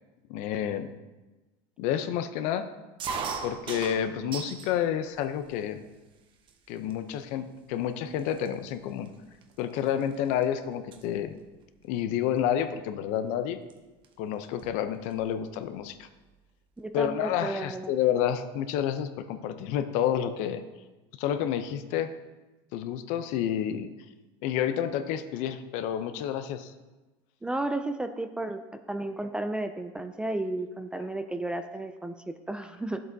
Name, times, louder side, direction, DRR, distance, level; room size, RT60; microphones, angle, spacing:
voice 1, 0.3-0.9 1.8-2.7 3.4-5.8 6.7-9.1 9.6-11.4 11.9-13.6 14.2-16.1 16.9-20.6 21.2-22.1 22.7-23.9 24.4-26.7, left 10 dB, 65° left, 10 dB, 0.6 m, -29 dB
sound 1, 3.0-4.7 5.2-5.8 6.5-6.6 6.8-7.2 7.9-8.0 8.2-10.4 10.7-11.0 12.4-12.6 13.7-13.8 14.0-14.1 14.4-15.3, right 5 dB, 40° right, 0.8 m, -38 dB
voice 2, 16.8-17.9 27.4-28.6 28.9-33.0, right 2 dB, 5° right, 8 dB, 0.3 m, -33 dB
11.0 x 7.6 x 2.7 m, 1.2 s
cardioid pair, 145°, 13 cm